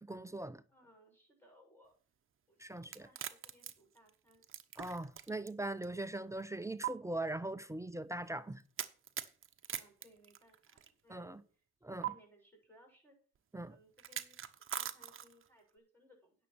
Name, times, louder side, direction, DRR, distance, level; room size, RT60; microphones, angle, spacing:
voice 1, 0.0-0.6 2.6-3.1 4.8-8.6 11.1-11.4 11.8-12.1 13.5-13.8, right 2 dB, 10° right, 0.6 m, -41 dB
voice 2, 0.7-1.9 2.5-4.4 9.7-11.6 11.9-13.2 13.6-14.4 14.7-16.3, equal, 5° left, 6.8 m, -65 dB
sound 1, 2.8-5.5 5.8-5.9 6.8-6.9 8.8-10.9 12.0-12.1 14.0-15.5, right 10 dB, 45° right, 1.0 m, -42 dB
10.0 x 6.4 x 6.1 m
cardioid pair, 90°, 30 cm